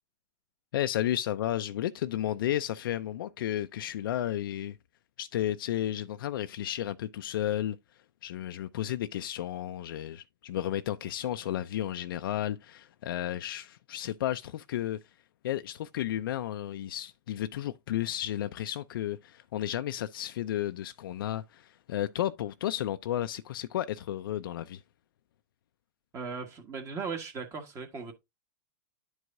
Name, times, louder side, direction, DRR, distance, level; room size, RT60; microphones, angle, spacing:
voice 1, 0.7-4.8 5.2-7.8 8.2-15.0 15.4-24.8, left 12 dB, 70° left, 0.5 m, -33 dB
voice 2, 26.1-28.1, right 5 dB, 25° right, 1.5 m, -37 dB
11.0 x 4.7 x 2.6 m
hypercardioid pair, 135°, 12 cm